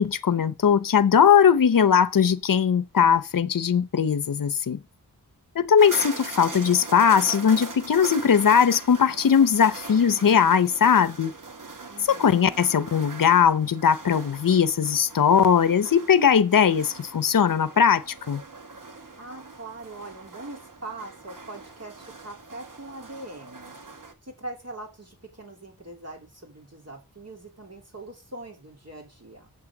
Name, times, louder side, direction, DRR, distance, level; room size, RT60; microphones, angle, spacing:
voice 1, 0.0-4.8 5.6-11.3 12.1-18.4, left 7 dB, 65° left, 0.7 m, -20 dB
sound 1, 5.8-24.1, right 3 dB, 60° right, 1.6 m, -41 dB
voice 2, 11.9-12.6 19.2-23.7 24.2-29.5, right 2 dB, 45° right, 3.0 m, -42 dB
8.8 x 7.3 x 7.2 m
wide cardioid pair, 80°, 35 cm